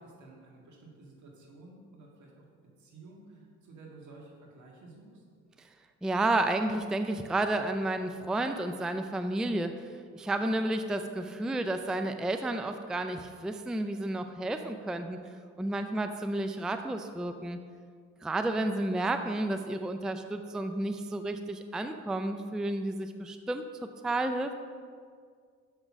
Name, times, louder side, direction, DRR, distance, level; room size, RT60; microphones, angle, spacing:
voice 1, 0.0-2.4 2.8-5.2, right 3 dB, 70° right, -2 dB, 2.0 m, -52 dB
voice 2, 6.0-9.9 10.1-15.2 15.6-17.6 18.2-24.5, right 2 dB, ahead, 7 dB, 0.4 m, -31 dB
6.5 x 6.1 x 6.1 m, 2.1 s
cardioid pair, 90°, 30 cm